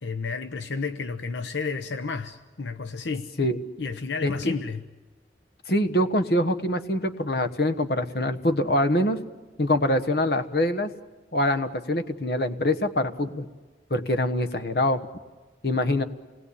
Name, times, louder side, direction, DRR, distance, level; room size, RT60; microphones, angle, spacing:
voice 1, 0.0-3.3 3.8-4.8, left 4 dB, 80° left, 0.9 m, -31 dB
voice 2, 4.2-4.5 5.7-9.2 9.6-10.9 11.3-13.4 13.9-15.0 15.6-16.0, left 1 dB, 60° left, 1.3 m, -24 dB
28.5 x 20.0 x 8.5 m
head